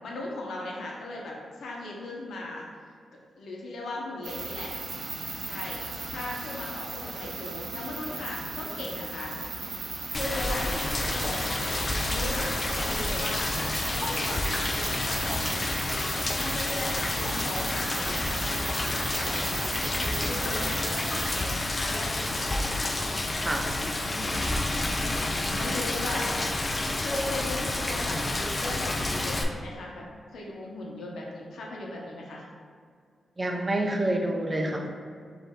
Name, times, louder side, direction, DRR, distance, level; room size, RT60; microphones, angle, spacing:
voice 1, 0.0-2.7 3.4-4.7 5.5-9.4 10.1-14.5 14.8-15.6 16.4-19.4 19.8-22.9 24.0-24.3 25.0-30.1 30.3-32.5, left 2 dB, 85° left, -2 dB, 0.8 m, -37 dB
sound 1, 4.2-21.4, right 3 dB, 60° right, 0.7 m, -37 dB
Rain, 10.1-29.4, left 2 dB, 30° left, 0.4 m, -29 dB
voice 2, 33.4-34.9, right 1 dB, 20° right, 2 dB, 0.5 m, -27 dB
5.0 x 2.6 x 3.7 m, 2.1 s
wide cardioid pair, 125°, 0 cm